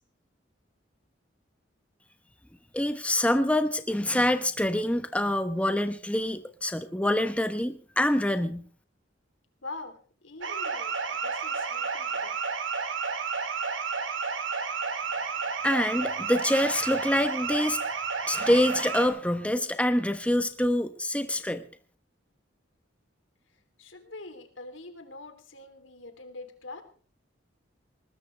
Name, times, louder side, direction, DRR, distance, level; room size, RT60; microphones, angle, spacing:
voice 1, 2.7-8.6 15.6-17.8 18.3-21.6, left 1 dB, 5° left, 9 dB, 0.9 m, -26 dB
voice 2, 9.6-10.0 10.2-12.3 23.8-26.8, left 2 dB, 85° left, 7 dB, 3.3 m, -44 dB
sound 1, 10.4-19.1, right 5 dB, 80° right, 2.5 m, -31 dB
20.5 x 20.0 x 3.4 m, 0.42 s
head